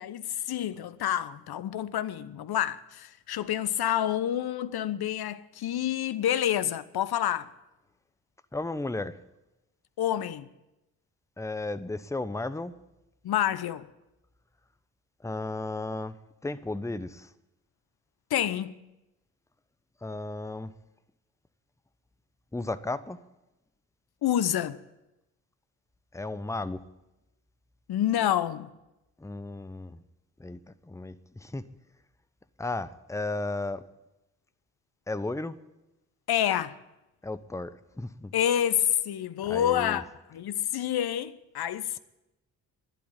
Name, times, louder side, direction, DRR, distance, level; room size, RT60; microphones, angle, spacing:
voice 1, 0.0-7.5 10.0-10.5 13.2-13.9 18.3-18.7 24.2-24.8 27.9-28.7 36.3-36.8 38.3-42.0, left 11 dB, 55° left, 1.0 m, -28 dB
voice 2, 8.5-9.1 11.4-12.7 15.2-16.2 16.4-17.3 20.0-20.7 22.5-23.2 26.1-26.8 29.2-30.0 30.4-31.7 32.6-33.8 35.1-35.6 37.2-38.3 39.4-40.0, left 2 dB, 5° left, 0.9 m, -34 dB
12.0 x 11.5 x 9.1 m
hypercardioid pair, 40°, 46 cm